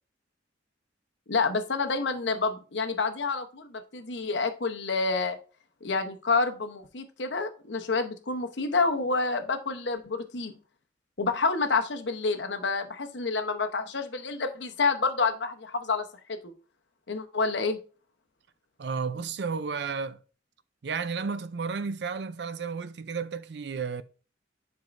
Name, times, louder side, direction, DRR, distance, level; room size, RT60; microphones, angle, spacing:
voice 1, 1.3-5.4 5.8-10.5 11.2-16.5 17.1-17.8, left 4 dB, 75° left, 0.9 m, -28 dB
voice 2, 18.8-20.2 20.8-24.0, right 5 dB, 65° right, 0.5 m, -32 dB
10.5 x 4.6 x 2.6 m
head